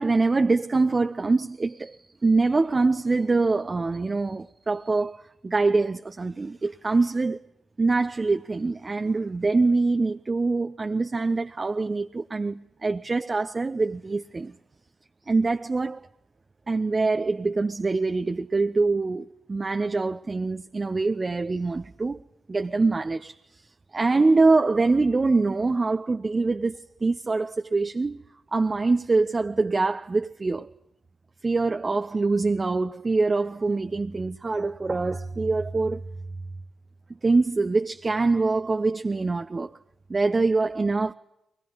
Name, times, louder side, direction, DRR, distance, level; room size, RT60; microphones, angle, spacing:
voice 1, 0.0-5.2 5.4-7.4 7.8-14.5 15.3-16.1 16.7-22.2 22.5-23.3 23.9-28.2 28.5-30.7 31.4-36.0 37.2-39.7 40.1-41.1, right 3 dB, 35° right, 0.9 m, -24 dB
23.0 x 21.0 x 9.6 m
hypercardioid pair, 45°, 0 cm